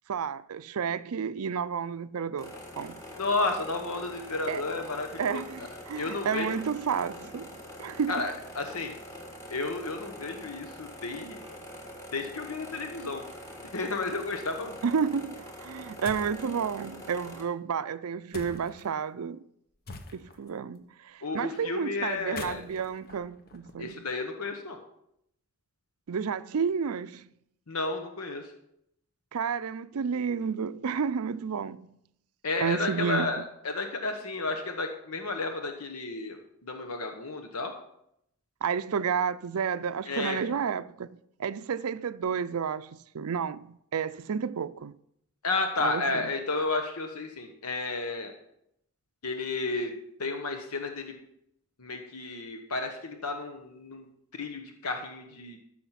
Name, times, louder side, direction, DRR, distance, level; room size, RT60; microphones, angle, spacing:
voice 1, 0.1-3.0 4.5-4.6 5.2-8.2 14.8-19.4 20.1-24.0 26.1-27.3 29.3-32.0 32.6-33.4 38.6-44.9 45.8-46.2 49.8-49.9, right 6 dB, 75° right, 0.5 m, -31 dB
sound 1, 2.4-17.4, equal, 15° left, 2.0 m, -44 dB
voice 2, 3.2-5.4 5.9-6.6 8.1-8.9 9.5-11.4 12.1-13.2 13.7-14.8 21.2-22.6 23.8-24.8 27.7-28.5 32.4-37.7 40.1-40.4 45.4-48.3 49.2-49.9 50.2-51.2 51.8-54.1 54.3-55.6, left 3 dB, 80° left, 1.1 m, -32 dB
sound 2, 16.0-16.4 18.3-18.9 19.9-20.5 22.2-24.1, left 3 dB, 45° left, 1.1 m, -44 dB
13.5 x 6.3 x 5.8 m
head